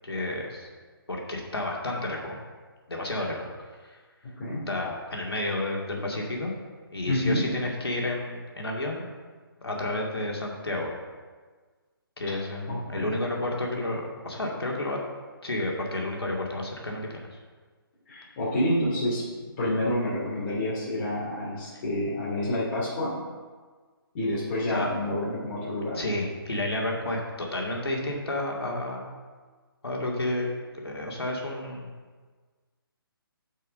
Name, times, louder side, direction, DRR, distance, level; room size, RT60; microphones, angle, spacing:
voice 1, 0.0-0.7 1.1-2.4 2.9-3.5 3.8-4.0 4.7-6.5 6.9-9.0 9.6-10.9 12.2-15.0 15.4-17.4 24.7-24.9 25.9-29.1 29.8-30.5 30.8-31.9, left 1 dB, 85° left, -1 dB, 2.4 m, -31 dB
voice 2, 7.1-7.4 12.7-13.1 18.1-19.2 19.6-23.1 24.1-26.0, left 1 dB, 35° left, -8 dB, 2.5 m, -28 dB
9.3 x 5.6 x 5.3 m, 1.5 s
figure-of-eight pair, 150°, 13 cm